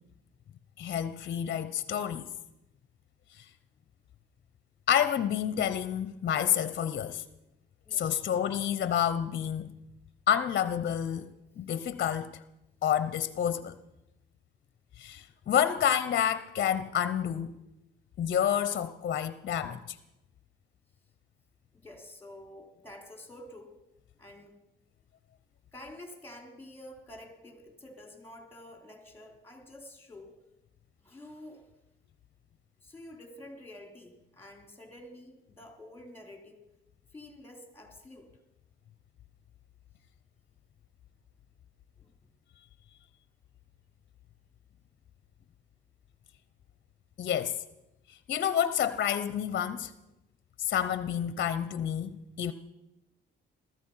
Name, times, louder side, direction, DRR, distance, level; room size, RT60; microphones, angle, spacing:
voice 1, 0.8-2.3 4.9-7.2 7.9-9.8 10.3-11.3 11.6-12.3 12.8-13.8 15.0-17.5 18.2-20.0 47.2-47.6 48.3-49.9 50.6-52.5, left 9 dB, 55° left, 13 dB, 0.8 m, -29 dB
voice 2, 7.9-8.2 21.7-23.8 24.2-24.6 25.7-30.4 31.0-31.6 32.8-36.6 37.1-38.3 42.0-42.2, left 1 dB, 10° left, 4 dB, 3.5 m, -49 dB
15.5 x 14.5 x 5.7 m, 0.91 s
cardioid pair, 90°, 20 cm